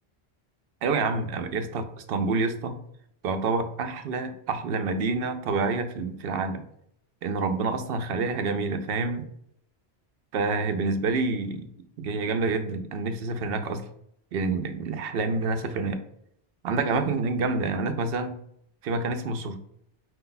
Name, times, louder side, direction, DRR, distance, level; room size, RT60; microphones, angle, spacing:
voice 1, 0.8-2.8 3.2-6.6 7.2-9.3 10.3-11.7 12.0-13.8 14.3-16.0 16.6-18.3 18.8-19.6, right 3 dB, 65° right, 8 dB, 0.7 m, -28 dB
4.7 x 2.3 x 3.9 m, 0.72 s
omnidirectional pair, 1.1 m